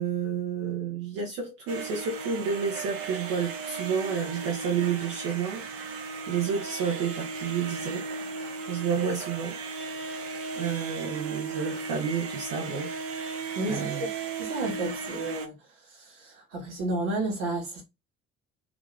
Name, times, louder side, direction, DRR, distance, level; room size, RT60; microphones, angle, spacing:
voice 1, 0.0-5.7 6.3-8.1 8.7-9.6 10.6-12.9 13.7-14.0, right 6 dB, 60° right, 1.0 m, -30 dB
sound 1, 1.7-15.5, right 4 dB, 40° right, 0.6 m, -36 dB
voice 2, 13.5-14.1 14.4-17.8, right 2 dB, 75° right, 1.3 m, -32 dB
2.9 x 2.5 x 3.4 m
figure-of-eight pair, 55°, 37 cm